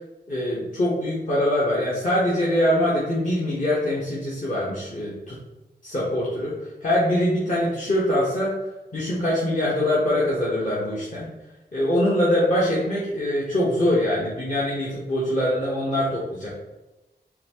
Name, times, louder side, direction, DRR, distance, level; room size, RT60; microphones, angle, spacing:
voice 1, 0.3-5.4 5.8-6.5 6.8-8.5 8.9-11.3 11.7-16.5, left 1 dB, 45° left, -8 dB, 1.2 m, -23 dB
4.1 x 3.3 x 3.0 m, 1.0 s
cardioid pair, 60°, 18 cm